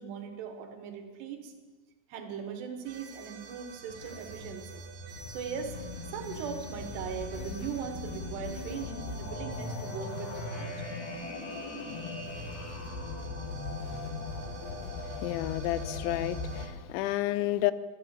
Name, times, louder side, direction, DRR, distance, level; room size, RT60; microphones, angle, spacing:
voice 1, 0.0-1.5 2.1-4.8 5.3-5.8 6.0-10.9, right 7 dB, 75° right, 6 dB, 3.2 m, -39 dB
sound 1, 2.9-16.7, right 4 dB, 90° right, 4.2 m, -48 dB
sound 2, 3.7-16.6, left 3 dB, 65° left, 3.4 m, -39 dB
voice 2, 15.2-17.7, left 15 dB, 85° left, 16 dB, 2.9 m, -30 dB
12.0 x 11.0 x 7.5 m, 1.4 s
omnidirectional pair, 5.2 m